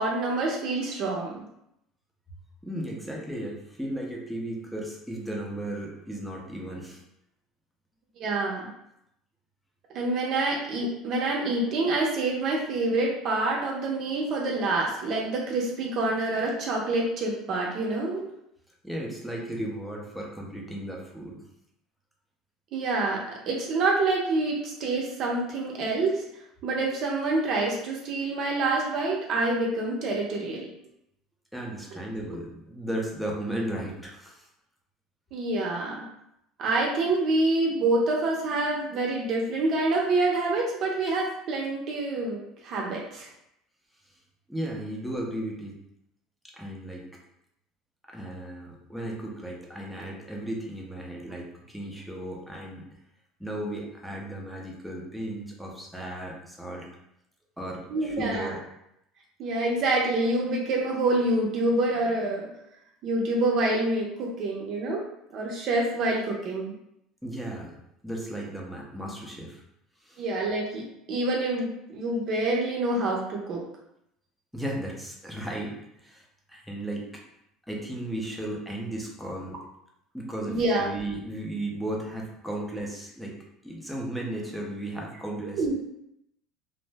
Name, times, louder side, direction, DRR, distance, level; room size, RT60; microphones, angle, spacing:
voice 1, 0.0-1.4 8.2-8.7 9.9-18.3 22.7-26.2 26.6-30.7 35.3-36.1 36.6-43.3 57.9-58.5 59.4-62.5 63.0-65.0 65.3-66.7 70.2-73.7 80.5-80.9 85.6-85.7, right 2 dB, 45° right, -2 dB, 0.6 m, -27 dB
voice 2, 2.6-7.0 18.8-21.4 31.5-34.5 44.5-45.7 46.4-47.0 48.1-52.8 53.4-56.9 57.6-58.6 67.2-67.8 68.0-69.6 70.0-70.2 74.5-77.2 77.7-79.6 80.1-83.3 83.6-85.6, right 1 dB, ahead, -2 dB, 0.5 m, -35 dB
2.6 x 2.0 x 3.3 m, 0.78 s
cardioid pair, 150°, 0 cm